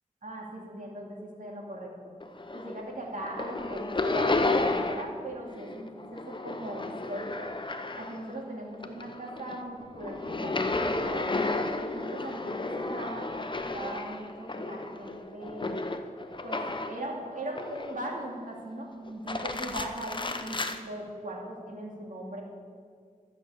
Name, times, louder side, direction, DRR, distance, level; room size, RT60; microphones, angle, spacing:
voice 1, 0.2-1.9 2.5-7.5 8.0-11.3 11.8-13.3 13.6-15.9 16.4-22.4, right 1 dB, 65° right, -1 dB, 2.6 m, -39 dB
sound 1, 2.2-2.9 3.2-5.2 5.5-8.4 8.7-17.1 17.5-18.2 19.1-20.8, left 2 dB, 35° left, 0.8 m, -32 dB
13.0 x 6.4 x 8.2 m, 2.1 s
wide cardioid pair, 65°, 15 cm